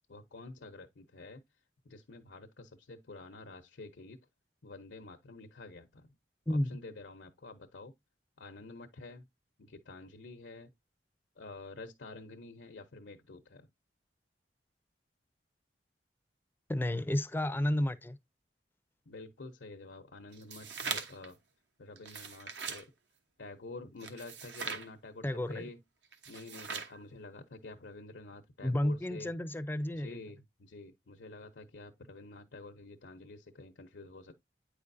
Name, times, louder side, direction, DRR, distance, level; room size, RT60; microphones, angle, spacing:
voice 1, 0.1-1.4 1.8-4.2 4.6-6.1 6.5-7.9 8.4-9.2 9.6-10.7 11.4-13.7 17.6-17.7 19.1-21.4 21.8-22.9 23.4-25.8 26.3-29.3 29.9-34.4, left 3 dB, 85° left, 0.8 m, -49 dB
voice 2, 6.5-6.8 16.7-18.2 25.2-25.6 28.6-30.2, left 1 dB, 10° left, 0.4 m, -31 dB
sound 1, 20.3-21.3 22.0-22.8 24.0-24.9 26.1-27.0, right 5 dB, 80° right, 1.0 m, -40 dB
8.9 x 5.0 x 2.6 m
head